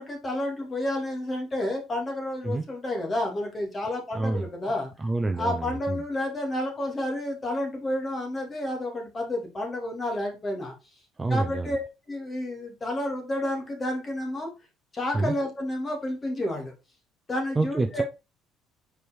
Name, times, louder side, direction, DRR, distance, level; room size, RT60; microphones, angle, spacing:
voice 1, 0.0-4.9 5.4-10.7 11.3-11.8 12.1-14.5 14.9-16.7 17.3-18.0, left 1 dB, 25° left, 2.6 m, -30 dB
voice 2, 4.1-4.5 5.0-6.0 11.2-11.7 15.1-15.3 17.6-18.0, right 2 dB, 15° right, 0.6 m, -27 dB
5.1 x 4.7 x 4.5 m
cardioid pair, 120°, 0 cm